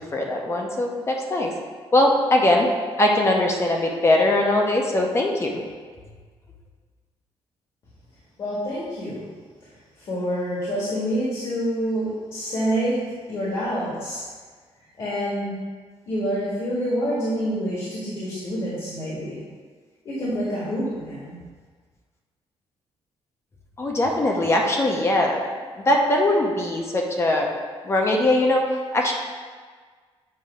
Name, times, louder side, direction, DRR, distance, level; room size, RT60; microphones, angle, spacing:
voice 1, 0.1-1.5 1.9-2.7 3.0-5.6 23.8-25.4 25.9-27.5 27.8-28.6 28.9-29.1, left 1 dB, 25° left, 1 dB, 0.6 m, -21 dB
voice 2, 8.4-9.2 10.0-13.0 13.3-14.2 15.0-15.5 16.1-19.4 20.0-21.3, equal, 55° left, -8 dB, 1.5 m, -27 dB
7.5 x 2.7 x 4.8 m, 1.6 s
cardioid pair, 155°, 10 cm